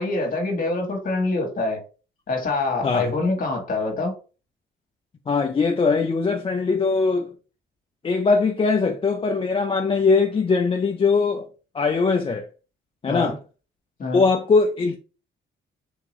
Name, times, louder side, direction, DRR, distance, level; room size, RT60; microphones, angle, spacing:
voice 1, 0.0-1.8 2.3-4.1 13.1-13.4 14.0-14.2, left 2 dB, 45° left, 1.4 m, -25 dB
voice 2, 5.3-7.4 8.0-11.5 11.7-12.5 13.0-13.4 14.1-15.0, left 4 dB, 30° left, 0.5 m, -21 dB
3.6 x 2.9 x 3.0 m
cardioid pair, 90°, 20 cm